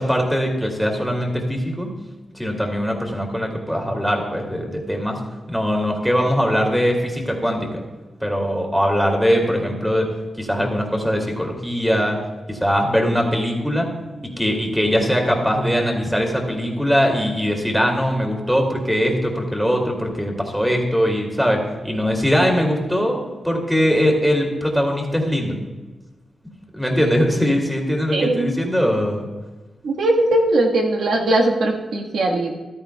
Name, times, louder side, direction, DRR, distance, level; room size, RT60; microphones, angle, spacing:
voice 1, 0.0-1.9 2.3-5.2 5.5-7.7 8.2-12.2 12.5-13.9 14.4-25.6 26.7-29.3, equal, ahead, 1 dB, 2.3 m, -21 dB
voice 2, 28.1-28.5 29.8-32.5, right 1 dB, 90° right, 0 dB, 1.5 m, -19 dB
14.5 x 13.0 x 2.3 m, 1.2 s
wide cardioid pair, 115°, 0 cm